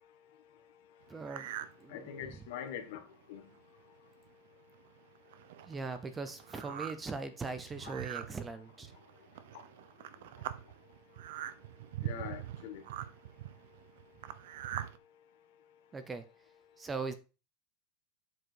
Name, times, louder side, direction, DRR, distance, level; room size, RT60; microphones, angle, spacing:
voice 1, 1.1-1.5 1.8-2.4 5.6-8.9 15.9-16.2 16.8-17.1, right 4 dB, 10° right, 0.7 m, -40 dB
sound 1, 1.2-1.8 2.2-2.3 3.0-3.1 3.3-3.6 4.3-4.4 4.7-15.0, right 12 dB, 70° right, 0.7 m, -43 dB
voice 2, 1.9-3.0 3.3-3.5 7.8-7.9 9.5-9.6 12.0-12.9, left 9 dB, 65° left, 1.7 m, -43 dB
7.7 x 4.5 x 4.8 m
supercardioid pair, 165°, 0 cm